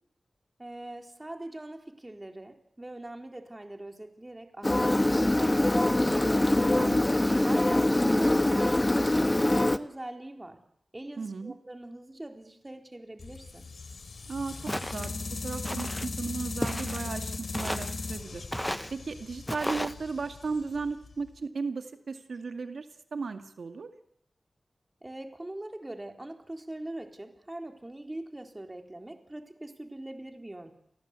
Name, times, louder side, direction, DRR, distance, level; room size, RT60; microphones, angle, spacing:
voice 1, 0.6-6.5 7.4-10.6 10.9-13.7 25.0-30.7, right 1 dB, 20° right, 5 dB, 3.9 m, -42 dB
Engine, 4.6-9.8, left 1 dB, 20° left, 1.4 m, -24 dB
voice 2, 6.8-7.2 11.2-11.5 14.3-18.5 18.9-23.9, right 4 dB, 85° right, 7 dB, 2.2 m, -36 dB
sound 1, 13.2-21.3, left 3 dB, 80° left, 3.6 m, -38 dB
Walk footsteps, 14.7-15.1 15.6-16.1 16.6-17.1 17.5-18.0 18.5-18.9 19.5-19.9, equal, 5° left, 1.1 m, -34 dB
29.5 x 24.0 x 8.3 m, 0.72 s
wide cardioid pair, 75°, 0 cm